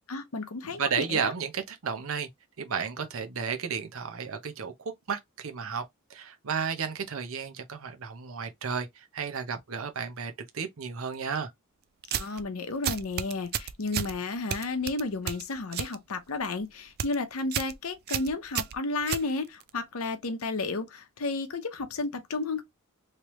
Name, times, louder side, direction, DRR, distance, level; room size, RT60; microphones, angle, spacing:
voice 1, 0.1-1.3 12.1-22.6, left 3 dB, 80° left, 0.8 m, -32 dB
voice 2, 0.6-2.3 2.6-5.8 6.1-11.5, right 6 dB, 65° right, 0.7 m, -33 dB
sound 1, 12.0-12.4 12.8-14.1 14.5-16.0 16.3-16.6 16.9-17.2 17.5-17.8 18.1-19.7, right 9 dB, 45° right, 0.3 m, -32 dB
3.2 x 3.0 x 3.0 m
head